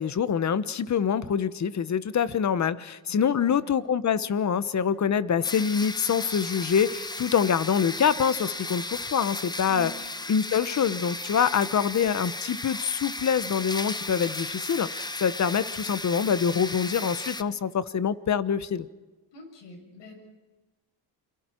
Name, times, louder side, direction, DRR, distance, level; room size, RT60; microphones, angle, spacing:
voice 1, 0.0-9.9 10.3-18.9, left 7 dB, 40° left, 15 dB, 1.1 m, -25 dB
voice 2, 3.1-3.7 9.7-9.9 19.3-20.1, equal, 70° left, 3 dB, 7.4 m, -44 dB
sound 1, 5.4-17.4, left 2 dB, 10° left, 0.9 m, -35 dB
29.5 x 23.5 x 4.6 m, 1.2 s
cardioid pair, 110°, 44 cm